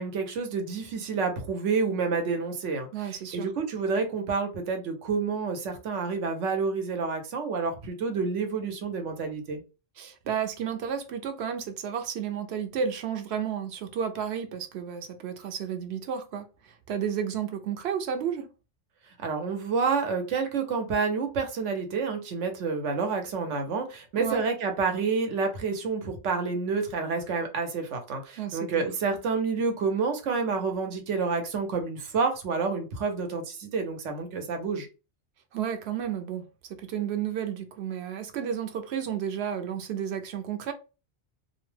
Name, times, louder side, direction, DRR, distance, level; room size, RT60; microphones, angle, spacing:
voice 1, 0.0-9.6 19.2-34.9, right 4 dB, 90° right, 1.1 m, -29 dB
voice 2, 2.9-3.5 10.0-18.5 24.2-24.4 28.4-28.9 35.5-36.5 36.8-40.7, right 8 dB, 70° right, 0.8 m, -32 dB
2.7 x 2.1 x 3.1 m
omnidirectional pair, 1.2 m